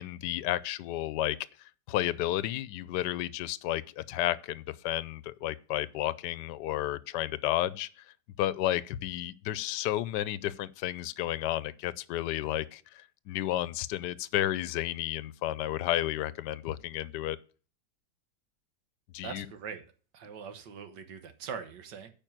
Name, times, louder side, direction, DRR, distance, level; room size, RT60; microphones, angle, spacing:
voice 1, 0.0-1.4 1.9-8.0 8.4-17.4 19.1-19.5, left 14 dB, 80° left, 1.2 m, -32 dB
voice 2, 19.2-19.8 20.1-22.1, right 6 dB, 90° right, 1.8 m, -42 dB
9.1 x 5.3 x 7.4 m
omnidirectional pair, 1.8 m